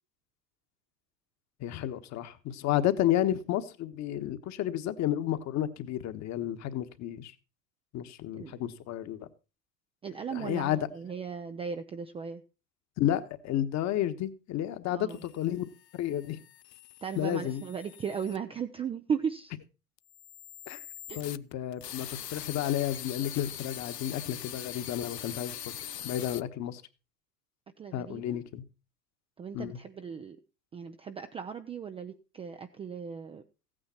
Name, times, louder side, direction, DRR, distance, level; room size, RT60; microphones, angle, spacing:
voice 1, 1.6-7.3 7.9-9.3 10.3-10.8 13.0-15.6 16.0-16.4 17.2-17.6 20.7-20.8 21.1-25.8 26.0-26.8 27.9-28.6 29.5-29.8, left 12 dB, 35° left, 10 dB, 1.3 m, -31 dB
voice 2, 10.0-12.4 14.9-15.2 17.0-19.5 21.1-21.2 27.8-28.4 29.4-30.4 30.7-33.4, right 6 dB, 10° right, 7 dB, 0.5 m, -37 dB
sound 1, 15.1-18.4 20.0-26.4, left 11 dB, 90° left, 0.6 m, -43 dB
15.5 x 9.0 x 4.4 m, 0.33 s
hypercardioid pair, 90°, 48 cm